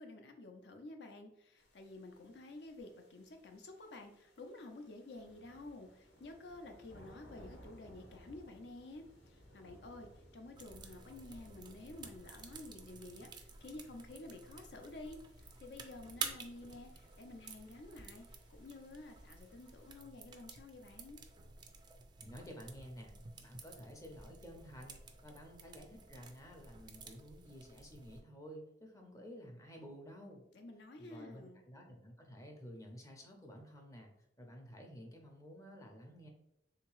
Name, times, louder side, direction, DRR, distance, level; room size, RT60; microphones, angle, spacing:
voice 1, 0.0-21.2 30.5-31.6, left 2 dB, 70° left, 5 dB, 0.6 m, -51 dB
sound 1, 1.6-20.0, equal, 85° left, 1.0 m, -62 dB
sound 2, 10.6-28.2, right 5 dB, 25° right, 0.3 m, -51 dB
voice 2, 22.2-30.4 31.0-34.1 34.4-36.3, equal, 20° left, 2 dB, 0.6 m, -52 dB
3.5 x 2.8 x 3.0 m, 0.83 s
head